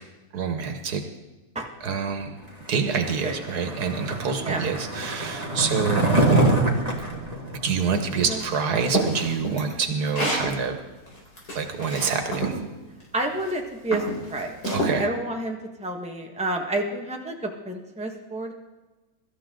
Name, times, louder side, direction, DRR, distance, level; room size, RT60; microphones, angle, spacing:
voice 1, 0.3-1.0 1.8-2.3 2.7-6.1 7.6-10.8 11.5-12.6 14.6-15.1, right 5 dB, 90° right, 6 dB, 1.8 m, -26 dB
Skateboard, 3.0-8.4, right 2 dB, 25° right, 2.2 m, -25 dB
voice 2, 7.9-8.4 13.1-14.0 14.3-14.6 15.0-18.5, right 2 dB, 5° right, 1 dB, 1.5 m, -29 dB
sound 1, 8.4-10.5 11.1-12.6 13.3-13.5 13.9-14.9, right 1 dB, 85° left, 4.9 m, -28 dB
24.0 x 13.0 x 3.9 m, 1.2 s
omnidirectional pair, 1.6 m